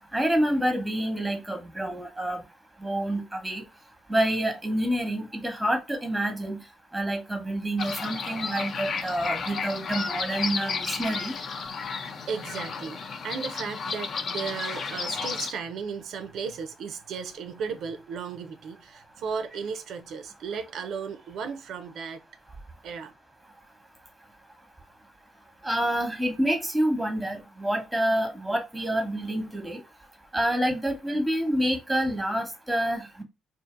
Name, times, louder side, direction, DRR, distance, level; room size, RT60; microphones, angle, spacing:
voice 1, 0.1-2.4 2.8-3.6 4.1-6.6 6.9-11.3 25.6-29.8 30.3-33.2, right 1 dB, 5° right, 0.9 m, -27 dB
sound 1, 7.8-15.5, left 5 dB, 50° left, 0.5 m, -33 dB
voice 2, 12.3-22.2 22.8-23.1, right 6 dB, 70° right, 0.4 m, -35 dB
2.5 x 2.4 x 2.4 m
cardioid pair, 90°, 0 cm